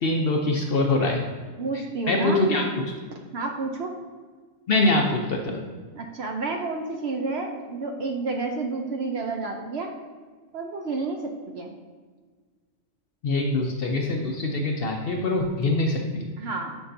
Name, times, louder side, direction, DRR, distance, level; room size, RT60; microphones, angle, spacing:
voice 1, 0.0-1.2 2.1-2.7 4.7-5.6 13.2-16.3, left 2 dB, 60° left, 2 dB, 0.7 m, -24 dB
voice 2, 1.6-2.9 3.3-3.9 5.9-9.9 10.5-11.2 11.5-11.7 16.4-16.8, right 3 dB, 60° right, 3 dB, 0.7 m, -30 dB
6.9 x 5.5 x 2.6 m, 1.5 s
omnidirectional pair, 1.4 m